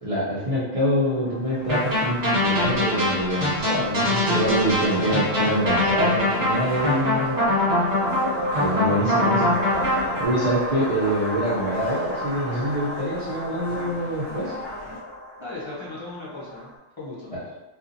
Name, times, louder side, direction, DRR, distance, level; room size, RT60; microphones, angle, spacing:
voice 1, 0.0-7.4 8.4-9.5 10.2-14.5, equal, 45° right, -9 dB, 0.4 m, -25 dB
sound 1, 1.0-16.7, left 1 dB, 10° right, 1.1 m, -33 dB
sound 2, 1.4-15.0, left 1 dB, 60° left, 1.1 m, -42 dB
sound 3, 1.7-10.2, left 1 dB, 30° right, 1.4 m, -23 dB
voice 2, 4.2-4.9 7.3-7.7 15.4-17.4, left 2 dB, 35° left, -7 dB, 0.5 m, -38 dB
2.7 x 2.4 x 2.5 m, 1.1 s
omnidirectional pair, 1.4 m